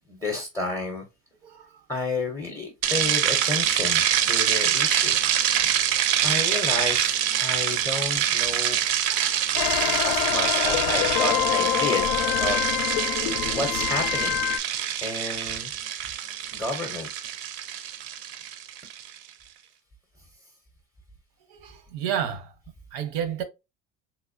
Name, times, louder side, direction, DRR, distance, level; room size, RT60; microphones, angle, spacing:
voice 1, 0.1-1.1 1.9-5.3 6.2-8.8 10.0-12.6 13.5-14.4 15.0-15.7 16.5-17.1, left 2 dB, 5° left, 0.5 m, -31 dB
sound 1, 2.8-19.1, right 10 dB, 60° right, 0.5 m, -25 dB
voice 2, 9.1-9.5 10.9-11.1 21.5-22.5 22.9-23.4, right 9 dB, 85° right, 0.8 m, -31 dB
sound 2, 9.6-14.6, left 11 dB, 85° left, 0.5 m, -25 dB
3.5 x 2.9 x 2.5 m
cardioid pair, 170°, 30 cm